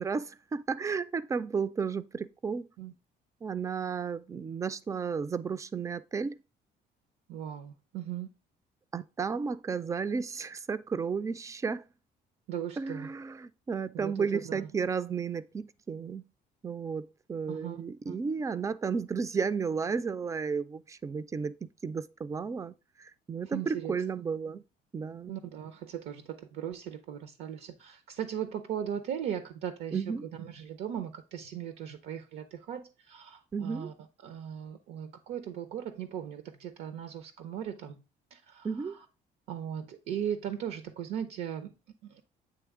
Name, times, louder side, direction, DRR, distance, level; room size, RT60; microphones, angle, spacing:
voice 1, 0.0-2.7 3.4-6.4 8.9-11.8 12.8-16.2 16.6-24.6 24.9-25.4 29.9-30.3 33.5-33.9 38.6-39.0, right 5 dB, 20° right, 0.3 m, -33 dB
voice 2, 7.3-8.3 12.5-13.1 13.9-14.7 17.5-18.2 23.5-23.9 25.3-33.9 34.2-38.0 38.3-38.7 39.5-41.7 42.0-42.2, right 9 dB, 80° right, 0.7 m, -38 dB
8.4 x 3.2 x 3.5 m
cardioid pair, 110°, 17 cm